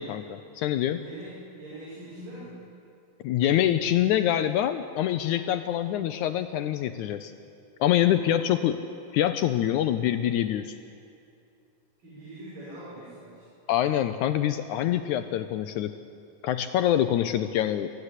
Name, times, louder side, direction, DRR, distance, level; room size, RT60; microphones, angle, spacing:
voice 1, 0.0-1.0 3.2-7.3 7.8-8.8 9.1-10.7 13.7-15.9 16.4-17.9, left 11 dB, 80° left, 9 dB, 1.8 m, -25 dB
voice 2, 0.9-2.6 8.0-8.7 12.0-13.4, right 1 dB, 70° right, -8 dB, 7.4 m, -43 dB
23.0 x 15.0 x 9.9 m, 2.5 s
omnidirectional pair, 4.0 m